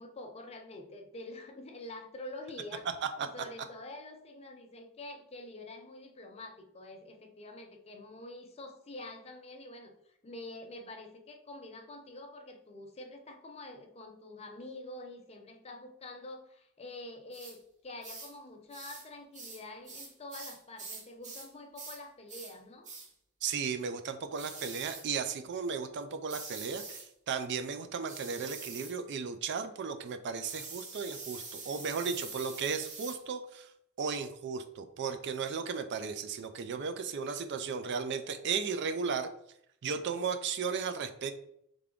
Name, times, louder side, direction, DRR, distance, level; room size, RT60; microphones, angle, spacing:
voice 1, 0.0-2.9 3.2-22.9, left 2 dB, 30° left, 4 dB, 0.5 m, -47 dB
sound 1, 17.3-17.6 18.0-18.3 18.7-19.1 19.3-21.5 21.8-22.0 22.3-22.6 22.8-23.1 24.4-25.1 26.3-27.1 28.1-29.0 30.4-33.2, right 4 dB, 35° right, 0.9 m, -45 dB
voice 2, 23.4-33.7 34.0-39.3 39.8-41.3, right 5 dB, 50° right, 9 dB, 0.4 m, -35 dB
3.5 x 3.4 x 3.7 m, 0.74 s
head